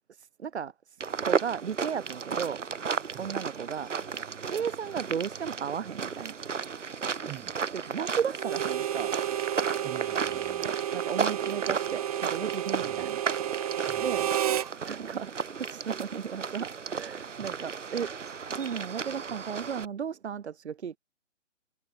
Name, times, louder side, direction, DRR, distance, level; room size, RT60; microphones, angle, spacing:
voice 1, 0.1-0.7 1.2-2.6 3.2-3.9 4.4-6.3 7.9-9.1 10.9-13.2 14.0-14.3 14.8-15.3 15.6-18.1 18.5-21.0, right 7 dB, 60° right, 1.6 m, -34 dB
sound 1, 1.0-19.9, right 6 dB, 80° right, 1.9 m, -34 dB
voice 2, 7.3-7.6 9.8-10.7 12.8-13.1 13.9-14.3 17.4-17.6, right 18 dB, 15° right, 3.4 m, -46 dB
Harmonica, 8.4-14.7, right 11 dB, 30° right, 1.1 m, -31 dB
hypercardioid pair, 155°, 37 cm